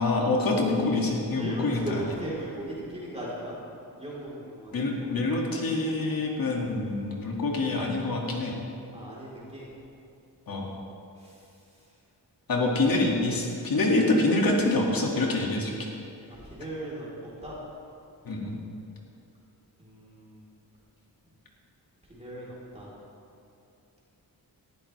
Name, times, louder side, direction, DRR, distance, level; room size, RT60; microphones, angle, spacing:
voice 1, 0.0-1.9 4.7-8.5 10.5-10.7 12.5-15.7 18.3-18.6, left 2 dB, 65° left, -1 dB, 2.3 m, -26 dB
voice 2, 1.3-3.6 4.0-4.9 8.9-9.7 11.2-11.4 16.3-17.1 17.4-17.6 19.8-20.5 22.1-22.9, right 1 dB, 15° right, -7 dB, 3.8 m, -38 dB
19.0 x 14.5 x 3.4 m, 2.6 s
wide cardioid pair, 160°, 38 cm